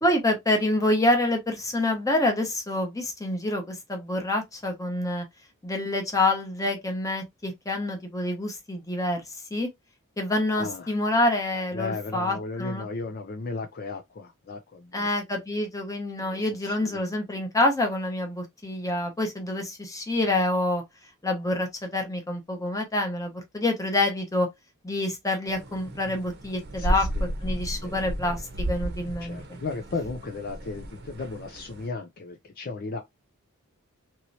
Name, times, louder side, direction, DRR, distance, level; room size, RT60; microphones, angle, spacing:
voice 1, 0.0-5.2 5.6-9.2 9.5-9.7 10.2-12.8 14.9-20.8 21.2-24.5 24.8-27.1 27.4-28.4 28.7-29.4, left 1 dB, 15° left, 0.9 m, -27 dB
voice 2, 10.5-10.9 11.7-15.1 16.2-17.0 26.8-27.3 27.8-28.4 29.2-33.0, left 3 dB, 45° left, 0.5 m, -35 dB
sound 1, 25.5-31.9, equal, 50° right, 0.8 m, -33 dB
3.0 x 2.9 x 2.6 m
head